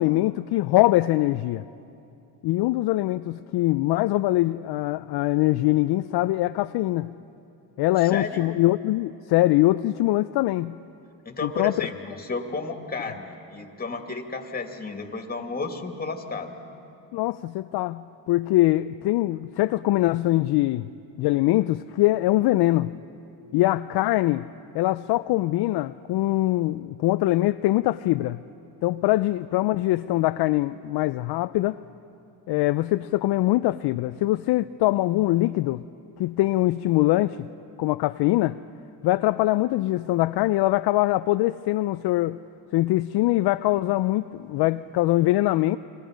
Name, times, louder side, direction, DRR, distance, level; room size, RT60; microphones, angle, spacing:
voice 1, 0.0-1.6 2.4-7.1 7.8-10.8 11.4-11.8 17.1-20.9 21.2-23.0 23.5-24.5 24.7-28.4 28.8-31.8 32.5-35.8 36.2-37.5 37.8-38.6 39.0-42.4 42.7-45.8, left 17 dB, 55° left, 0.5 m, -23 dB
voice 2, 8.0-8.5 11.3-16.5, left 4 dB, 20° left, 2.4 m, -32 dB
29.5 x 24.0 x 5.1 m
cardioid pair, 100°, 47 cm